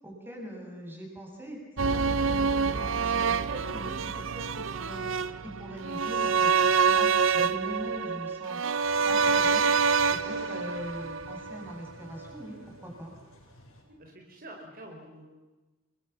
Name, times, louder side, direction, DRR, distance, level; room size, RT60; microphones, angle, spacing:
voice 1, 0.0-1.6 1.9-5.0 5.4-7.1 7.3-8.6 9.0-9.7 10.2-13.1, equal, 10° right, 0 dB, 8.0 m, -42 dB
sound 1, 1.8-11.9 12.2-12.3, right 5 dB, 65° right, 0.9 m, -26 dB
sound 2, 8.8-13.8, left 1 dB, 80° left, 7.7 m, -51 dB
voice 2, 13.8-15.4, right 1 dB, 45° right, 1 dB, 4.8 m, -48 dB
29.0 x 23.0 x 7.3 m, 1.1 s
head